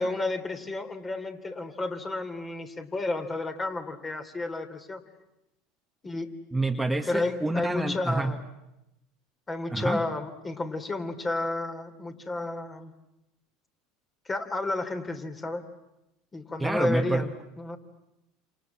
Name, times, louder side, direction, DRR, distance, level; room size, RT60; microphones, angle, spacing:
voice 1, 0.0-5.0 6.0-6.3 7.1-8.4 9.5-12.9 14.3-15.7 16.3-17.8, left 2 dB, 20° left, 6 dB, 3.6 m, -31 dB
voice 2, 6.5-8.3 9.7-10.0 16.6-17.2, right 2 dB, 5° right, 3 dB, 1.8 m, -27 dB
28.0 x 28.0 x 7.5 m, 0.88 s
hypercardioid pair, 85°, 0 cm